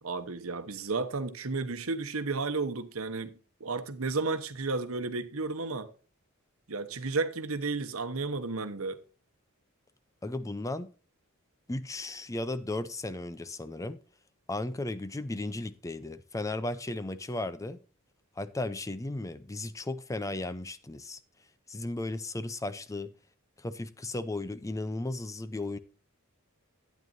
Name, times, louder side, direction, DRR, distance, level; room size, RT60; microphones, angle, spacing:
voice 1, 0.0-3.3 3.6-5.9 6.7-9.0, right 3 dB, 70° right, 1.1 m, -32 dB
voice 2, 10.2-10.9 11.7-14.0 14.5-17.8 18.4-21.2 21.7-23.1 23.6-25.8, left 2 dB, 15° left, 0.5 m, -35 dB
12.0 x 9.4 x 2.6 m
head